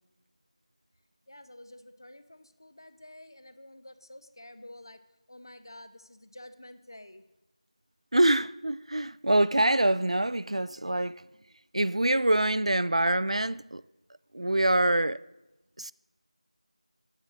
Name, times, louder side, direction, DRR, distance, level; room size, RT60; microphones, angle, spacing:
voice 1, 1.3-5.0 5.3-7.2, left 1 dB, 35° left, 0.6 m, -49 dB
voice 2, 8.1-11.2 11.7-13.8 14.3-15.2 15.8-15.9, right 1 dB, 60° right, 0.3 m, -25 dB
9.5 x 8.7 x 6.4 m
figure-of-eight pair, 175°, 4 cm